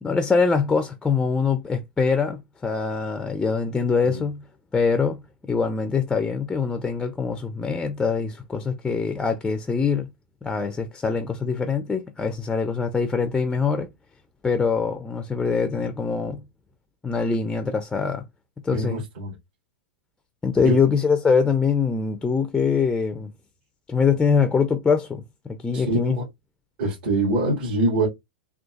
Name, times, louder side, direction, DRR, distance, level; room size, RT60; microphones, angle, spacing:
voice 1, 0.0-4.4 4.7-10.1 10.4-13.9 14.4-16.4 17.0-18.2 18.6-19.0 20.4-23.3 23.9-26.2, left 5 dB, 10° left, 0.4 m, -23 dB
voice 2, 18.7-19.3 20.6-20.8 25.7-26.2 26.8-28.1, right 2 dB, 65° right, 1.8 m, -24 dB
3.8 x 2.4 x 2.3 m
hypercardioid pair, 115°, 6 cm